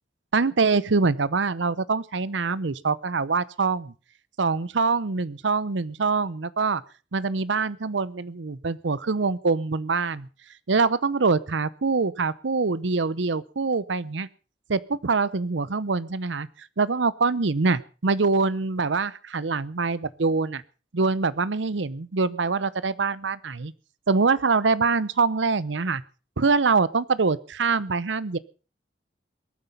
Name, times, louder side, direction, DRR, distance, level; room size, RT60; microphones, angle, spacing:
voice 1, 0.3-3.9 4.4-6.8 7.1-10.3 10.7-14.3 14.7-16.5 16.8-20.6 20.9-23.7 24.1-26.0 26.4-28.4, right 4 dB, 80° right, 18 dB, 0.8 m, -24 dB
21.5 x 9.2 x 5.5 m, 0.37 s
head